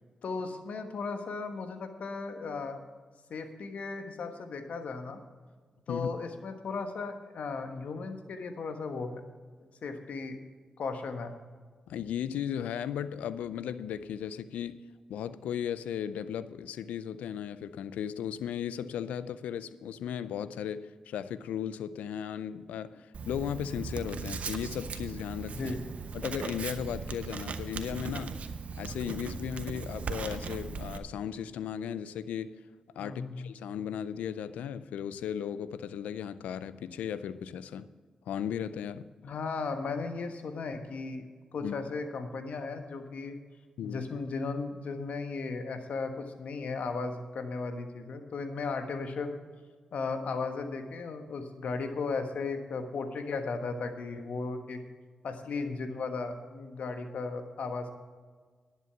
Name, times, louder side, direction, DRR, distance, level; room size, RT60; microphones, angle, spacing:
voice 1, 0.2-2.8 3.3-5.2 5.9-9.2 9.8-10.4 10.8-11.3 25.5-25.8 33.0-33.5 39.2-41.3 41.5-43.4 43.8-49.4 49.9-54.8 55.2-58.0, left 4 dB, 75° left, 7 dB, 1.3 m, -36 dB
voice 2, 11.9-14.8 15.1-25.7 26.1-28.4 28.8-32.6 33.0-37.9 38.3-39.1 41.6-41.7 43.8-44.0, left 9 dB, 90° left, 15 dB, 0.4 m, -36 dB
Writing, 23.1-31.0, right 5 dB, 70° right, 0.9 m, -38 dB
11.0 x 8.1 x 5.9 m, 1.5 s
supercardioid pair, 40°, 2 cm